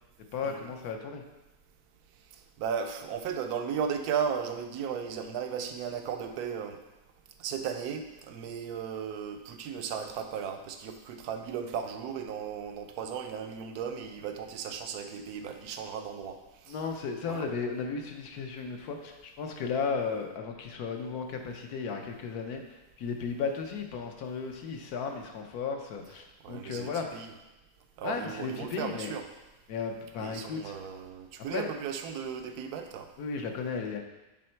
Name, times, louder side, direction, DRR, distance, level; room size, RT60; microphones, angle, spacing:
voice 1, 0.3-1.2 16.7-27.3 28.0-29.1 29.7-30.7 31.5-31.7 33.2-34.0, left 5 dB, 70° left, 4 dB, 1.3 m, -35 dB
voice 2, 2.6-6.8 7.4-16.4 16.7-16.8 17.3-17.5 26.4-27.3 28.0-29.2 30.2-33.1, right 7 dB, 75° right, 6 dB, 1.1 m, -35 dB
8.4 x 3.7 x 4.5 m, 1.1 s
omnidirectional pair, 1.8 m